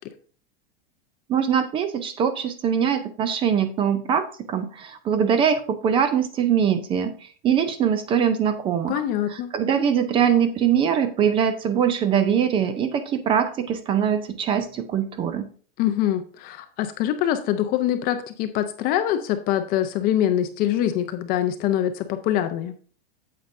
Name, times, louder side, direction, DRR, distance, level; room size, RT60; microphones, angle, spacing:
voice 1, 1.3-9.0 9.3-15.5, right 8 dB, 20° right, 11 dB, 0.4 m, -22 dB
voice 2, 8.9-9.5 15.8-22.7, left 11 dB, 30° left, 8 dB, 0.5 m, -24 dB
8.6 x 7.7 x 2.6 m, 0.42 s
supercardioid pair, 145°, 30 cm